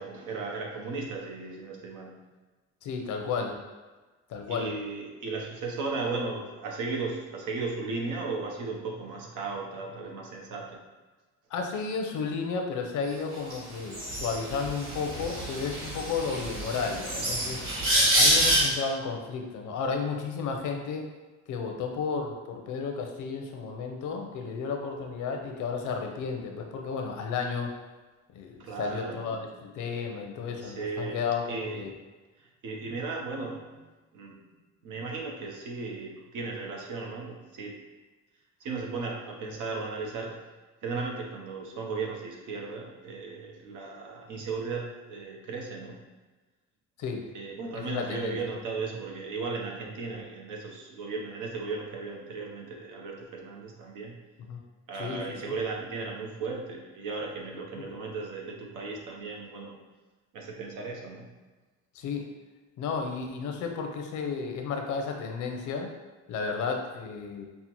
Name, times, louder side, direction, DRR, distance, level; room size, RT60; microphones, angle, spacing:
voice 1, 0.0-2.2 4.5-10.8 28.6-29.5 30.1-31.9 32.4-33.8 34.1-34.4 34.8-37.8 38.6-40.4 40.8-46.0 47.3-54.1 54.9-59.8 60.3-61.3, right 4 dB, 85° right, 0 dB, 0.8 m, -36 dB
voice 2, 2.8-3.6 4.3-4.7 11.5-17.6 18.1-21.1 21.5-27.7 28.3-31.9 47.0-47.3 47.7-48.4 54.5-54.6 55.0-55.5 57.8-57.9 61.9-62.3 62.8-65.9 66.3-67.4, left 5 dB, 80° left, 3 dB, 0.6 m, -33 dB
sound 1, 13.5-13.6 13.9-18.6, right 1 dB, 45° right, 1.5 m, -27 dB
5.4 x 2.1 x 2.9 m, 1.2 s
cardioid pair, 90°, 30 cm